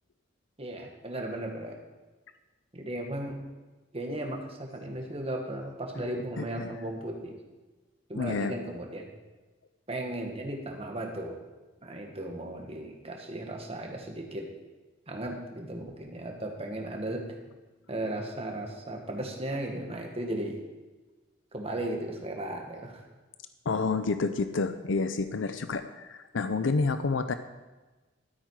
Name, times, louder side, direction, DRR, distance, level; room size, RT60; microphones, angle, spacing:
voice 1, 0.6-1.8 2.7-3.4 3.9-7.4 8.1-9.1 9.9-11.4 11.8-14.5 15.1-17.4 17.9-20.6 21.5-23.0, right 1 dB, 30° right, 1 dB, 1.8 m, -36 dB
voice 2, 6.4-6.7 8.2-8.5 23.7-27.3, left 4 dB, 75° left, 10 dB, 0.6 m, -29 dB
13.0 x 8.9 x 4.8 m, 1.2 s
head